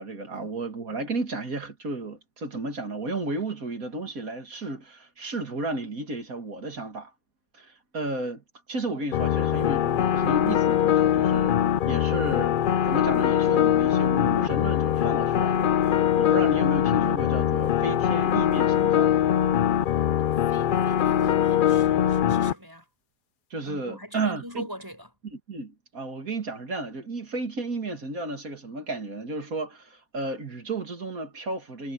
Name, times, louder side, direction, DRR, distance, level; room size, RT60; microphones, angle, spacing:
voice 1, 0.0-7.1 7.5-11.6 11.9-12.6 12.8-19.1 23.5-24.7 25.2-31.9, right 2 dB, 85° right, 2.9 m, -33 dB
sound 1, 9.1-22.5, left 10 dB, 70° left, 0.4 m, -22 dB
voice 2, 20.2-22.9 23.7-25.1, equal, 15° right, 7.1 m, -42 dB
omnidirectional pair, 1.5 m